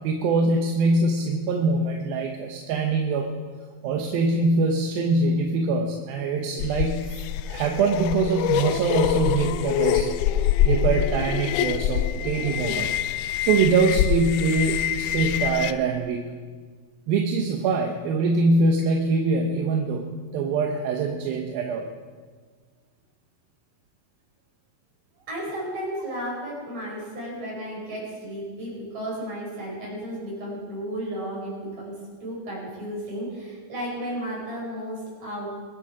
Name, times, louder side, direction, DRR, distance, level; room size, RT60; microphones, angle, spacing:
voice 1, 0.0-3.3 3.8-7.1 7.5-10.1 10.6-13.0 13.4-16.2 17.1-21.9, right 3 dB, 85° right, 3 dB, 2.8 m, -23 dB
sound 1, 6.6-15.7, left 10 dB, 90° left, 1.8 m, -25 dB
voice 2, 25.3-35.5, right 1 dB, 50° right, -4 dB, 6.3 m, -33 dB
22.0 x 10.5 x 4.9 m, 1.5 s
omnidirectional pair, 4.2 m